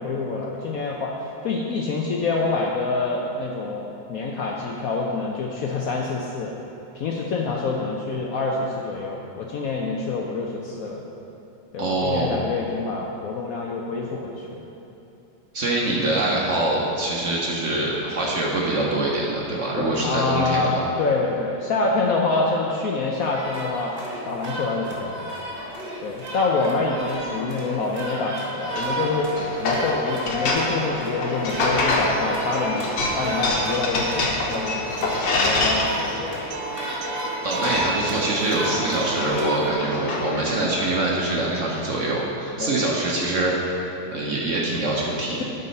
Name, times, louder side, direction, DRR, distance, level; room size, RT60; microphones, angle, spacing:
voice 1, 0.0-6.5 6.9-11.0 11.7-14.7 19.8-23.9 24.3-25.3 26.0-36.4 42.6-42.7 45.4-45.5, left 3 dB, 65° left, -1 dB, 0.9 m, -26 dB
voice 2, 11.8-12.3 15.5-20.8 37.4-43.6 44.1-45.4, right 2 dB, 50° right, -3 dB, 1.0 m, -24 dB
sound 1, 23.2-39.7, right 1 dB, 30° right, 1.7 m, -34 dB
sound 2, 28.6-40.8, left 2 dB, 90° left, 1.8 m, -27 dB
Acoustic guitar, 31.3-39.3, right 6 dB, 75° right, 1.2 m, -37 dB
12.0 x 4.1 x 5.3 m, 2.9 s
omnidirectional pair, 2.0 m